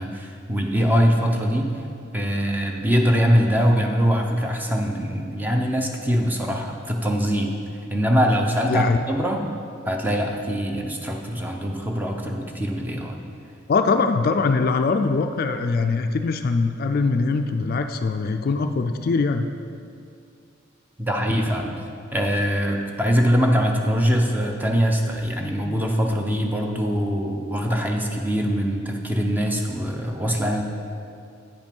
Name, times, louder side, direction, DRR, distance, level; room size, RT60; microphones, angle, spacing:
voice 1, 0.0-1.8 2.1-7.5 7.9-9.4 9.9-13.2 21.0-21.8 22.1-30.6, equal, 10° right, 1 dB, 0.6 m, -22 dB
voice 2, 8.6-9.0 13.7-19.5 27.7-27.8, left 4 dB, 50° left, 7 dB, 0.3 m, -22 dB
8.8 x 5.2 x 5.3 m, 2.4 s
head